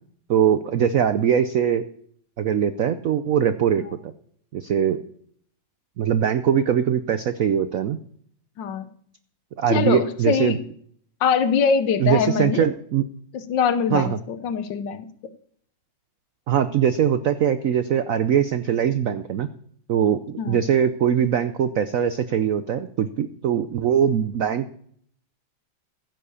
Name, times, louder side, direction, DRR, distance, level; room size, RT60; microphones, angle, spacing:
voice 1, 0.3-1.8 2.4-4.1 4.5-5.0 6.0-8.0 9.6-10.6 12.0-13.1 13.9-14.2 16.5-19.5 19.9-24.7, right 8 dB, 80° right, 11 dB, 0.7 m, -21 dB
voice 2, 9.7-10.6 11.2-12.6 13.3-15.1 20.4-20.6, left 6 dB, 65° left, 11 dB, 1.6 m, -23 dB
15.0 x 7.5 x 7.0 m, 0.62 s
omnidirectional pair, 2.2 m